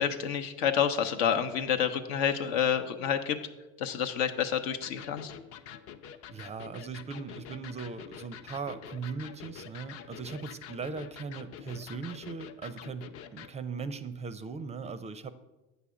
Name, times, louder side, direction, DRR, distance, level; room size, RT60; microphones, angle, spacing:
voice 1, 0.0-3.4 3.8-5.3, left 8 dB, 80° left, 7 dB, 0.8 m, -28 dB
Electric guitar, 4.8-13.6, left 8 dB, 50° left, 0.6 m, -46 dB
voice 2, 6.3-13.1 13.3-15.3, right 5 dB, 20° right, 13 dB, 0.4 m, -39 dB
8.1 x 5.7 x 4.9 m, 1.0 s
supercardioid pair, 95°, 31 cm